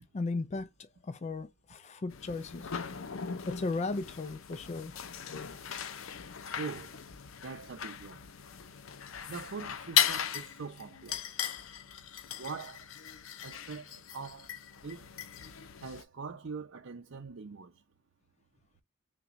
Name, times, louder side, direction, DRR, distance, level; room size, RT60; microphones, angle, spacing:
voice 1, 0.1-2.7 3.5-4.9, left 3 dB, 35° left, 0.4 m, -36 dB
sound 1, 2.1-16.0, left 9 dB, 85° left, 0.6 m, -37 dB
voice 2, 6.6-7.0 7.4-8.2 9.3-11.3 12.4-12.9 13.4-14.5 14.8-15.1 15.8-17.8, right 5 dB, 70° right, 0.6 m, -43 dB
5.7 x 2.2 x 2.6 m
head